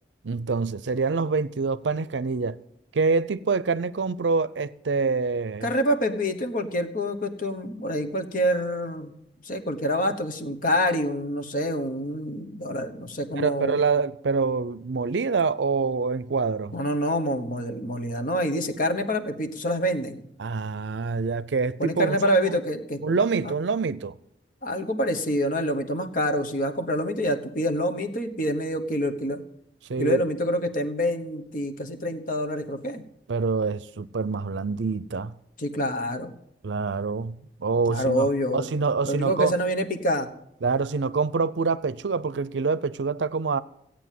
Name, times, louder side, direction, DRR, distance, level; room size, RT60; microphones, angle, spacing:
voice 1, 0.2-2.6 2.9-5.7 13.4-16.8 20.4-22.2 22.4-22.6 23.0-24.2 29.9-30.2 33.3-35.3 36.6-38.3 38.5-39.5 40.6-43.6, right 4 dB, 80° right, 0.5 m, -26 dB
voice 2, 5.6-9.2 9.4-13.8 16.7-20.2 21.8-23.5 24.6-29.4 30.0-33.0 35.6-36.3 37.9-38.7 39.0-40.3, equal, 50° left, 1.2 m, -26 dB
16.0 x 8.7 x 7.6 m
head